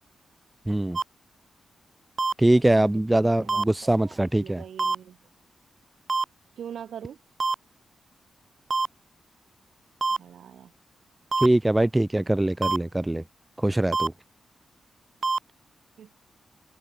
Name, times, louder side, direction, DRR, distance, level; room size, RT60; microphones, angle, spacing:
voice 1, 0.7-1.0 2.4-4.6 11.4-13.2 13.6-14.1, right 1 dB, 10° right, 0.7 m, -22 dB
sound 1, 1.0-1.1 2.2-2.3 3.5-3.6 4.8-5.0 6.1-6.2 7.4-7.6 8.7-8.9 10.0-10.2 11.3-11.5 12.6-12.8 13.9-14.1 15.2-15.4, right 4 dB, 30° right, 1.6 m, -24 dB
voice 2, 2.7-3.7 4.0-5.2 6.6-7.2 10.2-10.7 16.0-16.1, right 9 dB, 85° right, 2.7 m, -42 dB
open air
wide cardioid pair, 125°, 0 cm